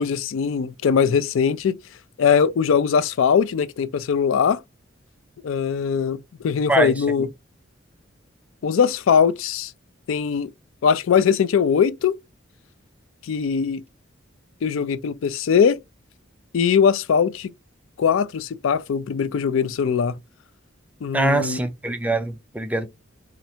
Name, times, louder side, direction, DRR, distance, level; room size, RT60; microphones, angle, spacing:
voice 1, 0.0-1.8 2.2-4.6 5.4-7.3 8.6-9.7 10.1-10.5 10.8-12.2 13.2-13.8 14.6-15.8 16.5-17.5 18.0-20.2 21.0-21.6, left 6 dB, 85° left, 0.4 m, -21 dB
voice 2, 21.1-22.9, right 2 dB, 5° right, 0.3 m, -23 dB
4.2 x 2.5 x 2.7 m
head